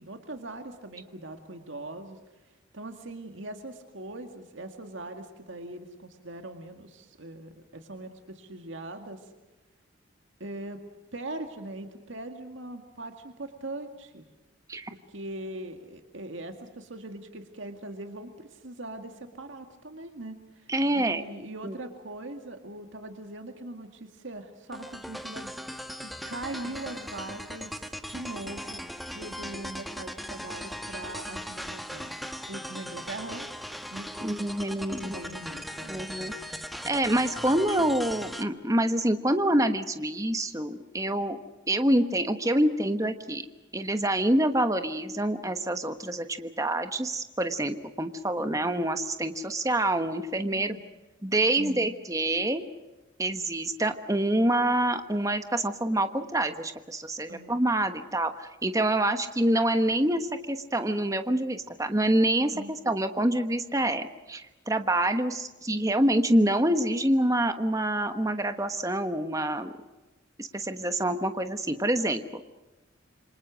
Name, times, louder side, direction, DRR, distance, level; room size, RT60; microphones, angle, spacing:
voice 1, 0.0-9.3 10.4-10.8 11.1-14.3 14.9-28.8 29.1-32.2 32.5-33.5 33.9-34.3 35.0-36.0 48.4-48.7 50.5-50.9 51.6-51.9 57.3-57.6 62.5-62.7, right 2 dB, 75° right, 5 dB, 2.1 m, -41 dB
voice 2, 20.7-21.2 21.6-21.7 34.2-35.2 35.9-36.3 36.8-41.4 41.7-43.5 43.7-50.8 51.2-52.6 53.2-69.7 70.4-72.4, right 1 dB, 15° right, 8 dB, 1.2 m, -26 dB
sound 1, 24.7-38.4, equal, ahead, 1.1 m, -39 dB
27.5 x 25.0 x 6.3 m, 1.1 s
head